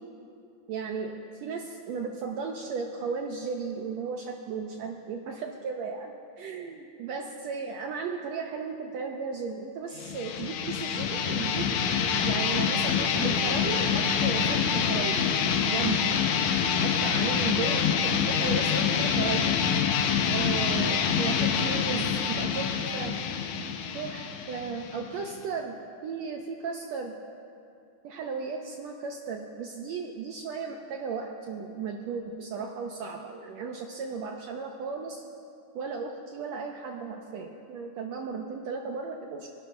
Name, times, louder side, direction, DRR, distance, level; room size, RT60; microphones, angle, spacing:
voice 1, 0.7-11.7 12.2-15.2 15.7-16.1 16.8-19.6 20.3-23.1 23.9-25.8 26.0-27.2 28.0-35.2 35.7-39.5, right 5 dB, 80° right, 1 dB, 1.6 m, -35 dB
sound 1, 10.0-25.4, left 7 dB, 75° left, 1.7 m, -26 dB
25.0 x 12.0 x 2.3 m, 2.5 s
omnidirectional pair, 3.8 m